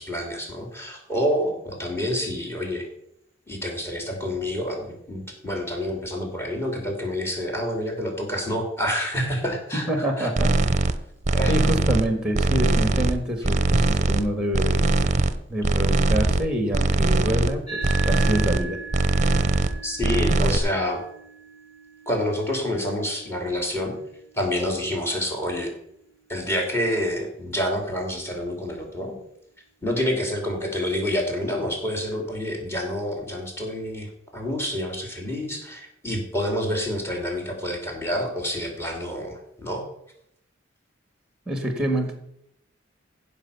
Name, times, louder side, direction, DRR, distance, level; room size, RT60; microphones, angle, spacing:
voice 1, 0.0-2.9 3.5-10.3 11.3-11.5 19.8-21.0 22.1-24.0 24.4-25.7 26.3-29.2 29.8-34.1 34.3-39.8, equal, 15° left, 2 dB, 2.9 m, -28 dB
voice 2, 9.7-10.5 11.5-14.8 15.5-18.8 41.5-42.1, right 1 dB, 5° right, 5 dB, 1.6 m, -26 dB
sound 1, 10.4-10.9 11.2-12.1 12.3-13.2 13.4-14.3 14.5-15.3 15.6-16.5 16.7-17.5 17.8-18.6 18.9-19.7 20.0-20.6, right 2 dB, 35° right, 0.7 m, -21 dB
sound 2, 17.7-26.4, right 3 dB, 35° left, 3.9 m, -40 dB
15.5 x 5.4 x 6.9 m, 0.75 s
head